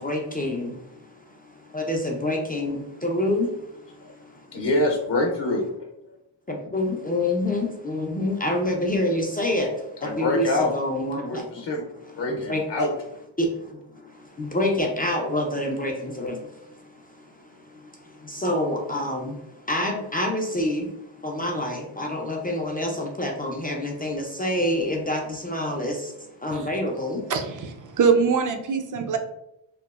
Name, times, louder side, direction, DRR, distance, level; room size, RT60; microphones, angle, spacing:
voice 1, 0.0-4.6 6.5-11.7 12.1-12.6 13.4-27.3, left 1 dB, 20° left, 0 dB, 0.3 m, -28 dB
voice 2, 4.5-5.7 10.0-10.7 11.2-11.8 12.2-12.9, left 2 dB, 55° left, 1 dB, 0.7 m, -25 dB
voice 3, 27.3-29.2, right 5 dB, 40° right, 5 dB, 0.4 m, -23 dB
2.9 x 2.0 x 2.3 m, 0.85 s
cardioid pair, 65°, 50 cm